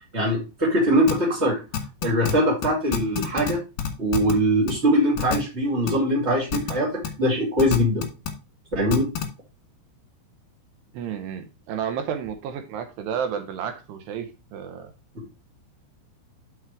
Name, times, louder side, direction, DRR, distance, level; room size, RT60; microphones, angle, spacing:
voice 1, 0.1-1.6 2.0-3.6 4.0-8.1 8.7-9.1, equal, 50° right, -2 dB, 0.8 m, -22 dB
sound 1, 1.1-1.2 1.7-2.3 2.6-2.7 2.9-3.5 3.8-4.3 4.7-4.8 5.2-5.4 5.9-6.0 6.5-6.7 7.0-7.1 7.6-8.3 8.9-9.2, left 8 dB, 65° left, 2.6 m, -26 dB
voice 2, 10.9-14.9, right 8 dB, 80° right, 7 dB, 2.4 m, -31 dB
6.4 x 5.8 x 4.6 m, 0.29 s
omnidirectional pair, 5.7 m